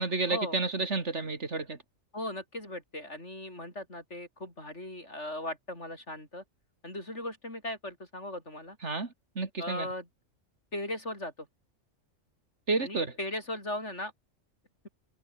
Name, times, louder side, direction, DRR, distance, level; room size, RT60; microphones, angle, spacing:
voice 1, 0.0-1.8 8.8-9.1 9.4-9.9 12.7-13.2, right 3 dB, 60° right, 2.7 m, -30 dB
voice 2, 2.1-6.4 6.8-8.8 9.6-10.1 10.7-11.3 12.8-14.1, left 1 dB, 60° left, 8.1 m, -38 dB
omnidirectional pair, 1.3 m